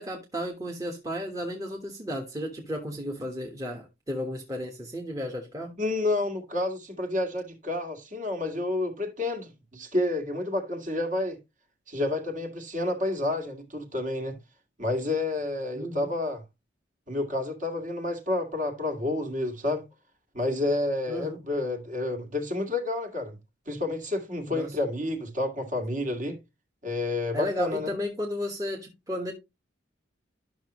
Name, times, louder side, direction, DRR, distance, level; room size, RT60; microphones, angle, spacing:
voice 1, 0.0-5.7 15.7-16.1 21.1-21.4 24.5-24.7 27.3-29.3, equal, 20° right, 1.4 m, -33 dB
voice 2, 5.8-11.4 11.9-14.4 14.8-16.4 17.1-19.8 20.3-23.4 23.7-26.4 26.8-27.9, left 2 dB, 45° right, 2.1 m, -29 dB
11.5 x 6.2 x 3.0 m
head